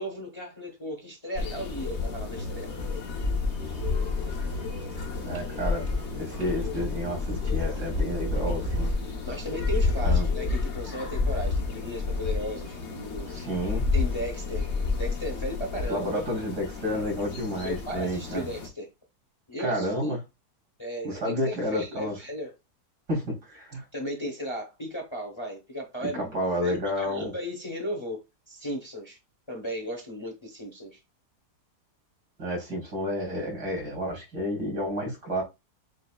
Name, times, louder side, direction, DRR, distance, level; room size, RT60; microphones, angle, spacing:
voice 1, 0.0-2.7 9.2-13.3 13.9-14.7 15.0-16.2 17.6-18.9 19.5-19.9 20.8-22.5 23.9-26.3 26.6-28.2 28.5-29.2 29.5-31.0, equal, 20° left, 1.0 m, -35 dB
sound 1, 1.4-18.7, left 4 dB, 50° left, 1.2 m, -30 dB
sound 2, 3.6-8.9, right 1 dB, 20° right, 0.6 m, -37 dB
voice 2, 5.1-5.9 6.1-8.9 10.0-10.3 13.3-13.8 15.9-18.5 19.6-20.2 21.0-22.2 23.1-23.8 26.0-27.3 32.4-35.4, equal, 80° right, 3.6 m, -30 dB
7.5 x 2.7 x 2.4 m
omnidirectional pair, 1.7 m